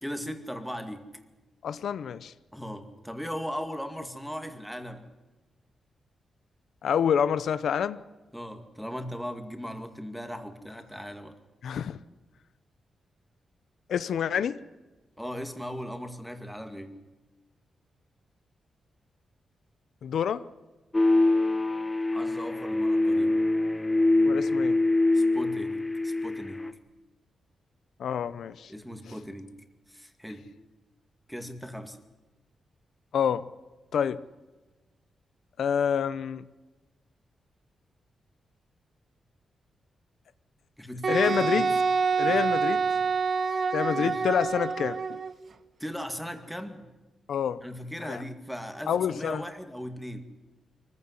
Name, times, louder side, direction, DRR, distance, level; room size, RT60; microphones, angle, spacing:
voice 1, 0.0-1.1 2.5-5.0 8.3-11.3 15.2-17.0 22.1-23.4 25.1-26.6 28.7-29.6 29.9-30.5 31.3-32.0 40.8-41.8 42.3-42.4 43.0-43.1 43.4-44.2 45.8-46.9 47.6-50.2, equal, ahead, 6 dB, 2.1 m, -38 dB
voice 2, 1.6-2.3 6.8-8.0 11.6-12.0 13.9-14.6 20.0-20.4 24.3-24.8 28.0-28.7 33.1-33.5 33.9-34.2 35.6-36.4 41.1-41.7 42.2-42.8 43.7-45.2 47.3-47.6 48.0-48.2 48.9-49.4, left 8 dB, 75° left, 14 dB, 0.7 m, -27 dB
sound 1, 20.9-26.7, left 2 dB, 15° left, 1.4 m, -24 dB
Wind instrument woodwind instrument, 41.0-45.3, right 5 dB, 50° right, 1.4 m, -26 dB
23.5 x 15.5 x 9.9 m, 1.2 s
wide cardioid pair, 125°, 0 cm